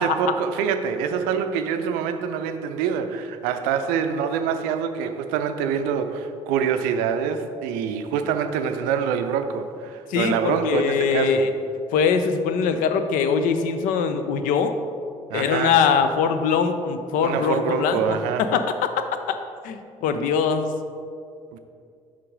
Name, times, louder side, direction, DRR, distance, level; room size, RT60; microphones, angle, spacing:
voice 1, 0.0-11.5 15.3-15.8 17.2-18.5 21.5-21.6, right 7 dB, 65° right, 8 dB, 0.5 m, -25 dB
voice 2, 10.1-11.5 11.9-14.7 15.3-18.9 19.6-20.7, left 6 dB, 60° left, 9 dB, 0.5 m, -22 dB
6.7 x 5.1 x 3.7 m, 2.4 s
figure-of-eight pair, 50°, 16 cm